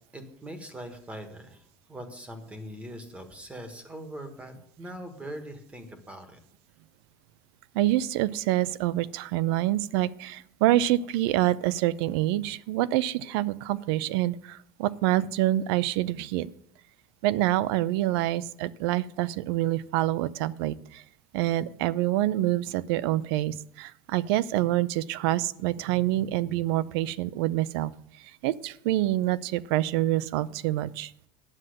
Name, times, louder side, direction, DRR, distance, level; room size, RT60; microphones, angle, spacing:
voice 1, 0.1-6.4, equal, 10° right, 7 dB, 1.3 m, -42 dB
voice 2, 7.7-16.5 17.2-21.0 21.3-27.9 28.4-31.1, right 15 dB, 85° right, 19 dB, 0.5 m, -26 dB
9.8 x 7.6 x 6.4 m, 0.70 s
cardioid pair, 165°, 13 cm